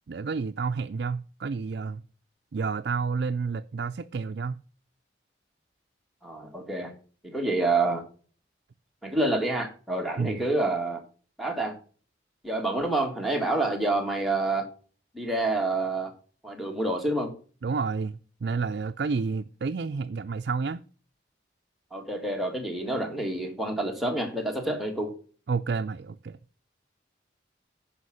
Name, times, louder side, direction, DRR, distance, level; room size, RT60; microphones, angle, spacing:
voice 1, 0.1-2.0 2.5-4.6 10.2-10.5 17.6-20.8 25.5-26.4, right 4 dB, 60° right, 0.4 m, -30 dB
voice 2, 6.2-6.9 7.2-8.0 9.0-11.0 11.4-11.8 12.4-14.7 15.1-16.1 16.4-17.3 21.9-25.1, right 2 dB, ahead, 1.8 m, -28 dB
9.7 x 5.7 x 6.2 m
head